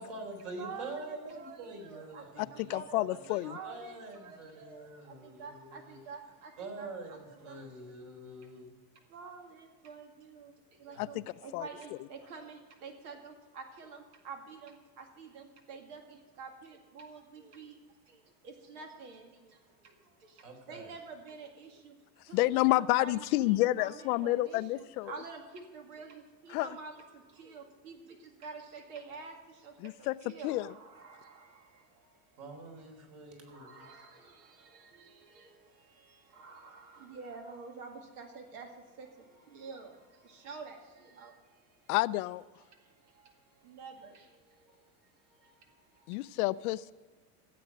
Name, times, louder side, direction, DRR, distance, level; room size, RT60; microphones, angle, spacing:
voice 1, 0.0-6.0 6.6-8.7 10.9-11.0 20.4-20.9 32.4-33.8, right 2 dB, 50° right, 2 dB, 4.3 m, -45 dB
voice 2, 0.6-7.8 8.4-8.5 8.9-22.0 22.3-32.8 33.4-41.9 42.7-46.3, right 4 dB, 75° right, 4 dB, 2.2 m, -49 dB
voice 3, 2.4-3.6 11.0-11.2 11.5-11.7 22.3-25.1 26.5-26.8 29.8-30.1 30.4-30.7 41.9-42.4 46.1-46.9, left 18 dB, 70° left, 17 dB, 0.5 m, -29 dB
15.0 x 7.8 x 6.1 m, 1.5 s
supercardioid pair, 125°, 46 cm